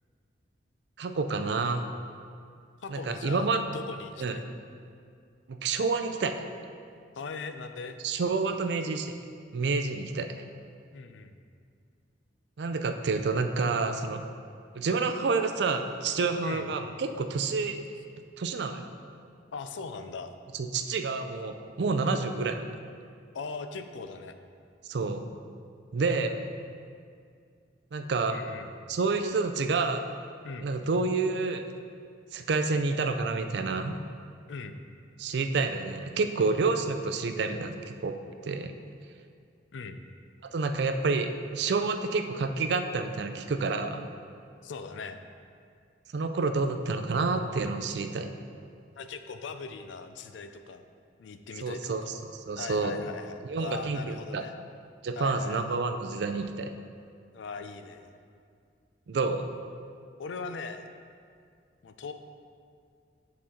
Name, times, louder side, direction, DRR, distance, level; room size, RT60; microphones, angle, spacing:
voice 1, 1.0-1.8 2.9-3.6 4.2-4.4 5.5-6.4 8.0-9.2 9.5-10.3 12.6-14.2 14.8-17.8 18.4-18.9 20.6-22.8 24.9-25.3 25.9-26.4 27.9-28.4 28.9-30.0 30.6-31.7 32.3-34.0 35.2-38.7 40.5-44.1 46.1-48.3 51.6-53.0 53.5-54.4 55.0-56.7 59.1-59.5, right 4 dB, 65° right, 7 dB, 0.4 m, -29 dB
voice 2, 2.8-4.5 7.2-8.0 10.9-11.3 16.4-16.7 19.5-20.3 23.3-24.3 26.3-26.4 28.3-28.7 30.4-30.7 34.5-34.8 39.7-40.0 44.6-45.2 49.0-50.8 51.2-52.1 52.6-54.6 55.2-55.8 57.3-58.1 60.2-60.9 61.8-62.1, left 4 dB, 85° left, 8 dB, 0.4 m, -40 dB
8.6 x 4.2 x 3.8 m, 2.3 s
head